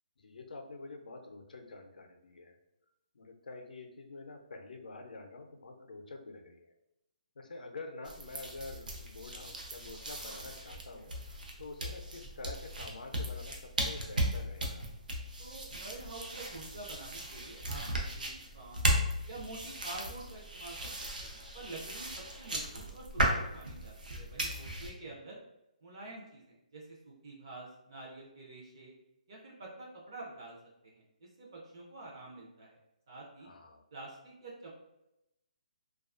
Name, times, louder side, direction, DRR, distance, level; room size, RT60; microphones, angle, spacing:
voice 1, 0.2-2.6 3.1-6.7 7.4-14.9 25.0-25.2 33.4-33.8, left 3 dB, 80° left, 4 dB, 0.5 m, -47 dB
sound 1, 8.0-24.9, right 1 dB, 80° right, 0.6 m, -36 dB
voice 2, 15.4-18.8 19.3-20.9 21.2-25.4 25.8-28.9 29.3-30.6 30.8-32.8 33.1-33.5 33.9-34.7, right 2 dB, 35° right, -3 dB, 0.4 m, -48 dB
2.4 x 2.3 x 2.4 m, 0.86 s
hypercardioid pair, 175°, 4 cm